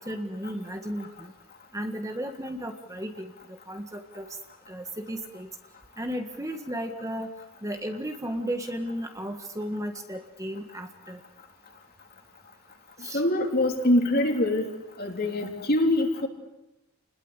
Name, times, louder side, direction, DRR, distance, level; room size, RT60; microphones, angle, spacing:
voice 1, 0.0-1.3 1.7-4.3 4.7-5.5 6.0-7.3 7.6-11.2 13.0-13.2, equal, 15° right, 5 dB, 1.7 m, -34 dB
voice 2, 13.1-14.6 15.0-16.3, left 1 dB, 45° left, 3 dB, 3.5 m, -24 dB
30.0 x 20.5 x 8.3 m, 0.95 s
head